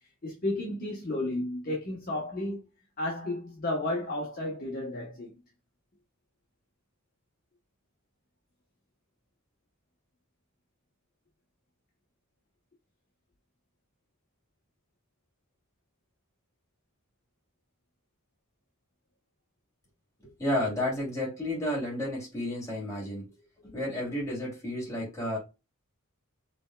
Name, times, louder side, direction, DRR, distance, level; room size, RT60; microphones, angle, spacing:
voice 1, 0.2-2.6 3.0-5.3, left 1 dB, 40° left, 1.0 m, -32 dB
voice 2, 20.4-23.2 23.6-25.4, left 1 dB, 15° left, 2.7 m, -31 dB
5.2 x 3.3 x 2.2 m
head